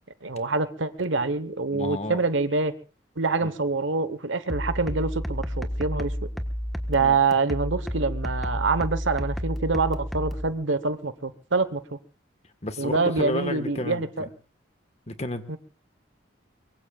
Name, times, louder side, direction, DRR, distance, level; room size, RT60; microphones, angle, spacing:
voice 1, 0.2-2.7 3.2-6.1 6.9-12.0 12.8-14.3 15.5-15.6, right 3 dB, 75° right, 1.2 m, -26 dB
voice 2, 1.7-2.2 3.4-3.5 7.0-7.2 12.6-14.3 15.1-15.6, left 1 dB, 35° left, 1.5 m, -32 dB
sound 1, 4.5-10.5, equal, ahead, 1.3 m, -31 dB
23.5 x 23.0 x 2.4 m
head